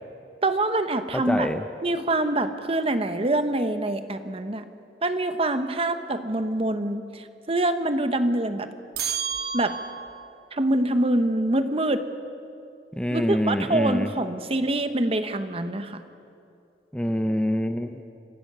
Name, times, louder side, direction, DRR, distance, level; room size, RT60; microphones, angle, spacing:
voice 1, 0.4-1.5 1.8-4.7 5.0-8.7 9.5-9.7 10.5-12.0 13.1-16.0, right 1 dB, 35° right, 9 dB, 1.1 m, -25 dB
voice 2, 1.1-1.6 12.9-14.1 16.9-17.9, equal, 5° left, 7 dB, 0.6 m, -25 dB
sound 1, 8.9-10.3, right 7 dB, 60° right, 1.2 m, -31 dB
26.5 x 16.0 x 6.9 m, 2.5 s
head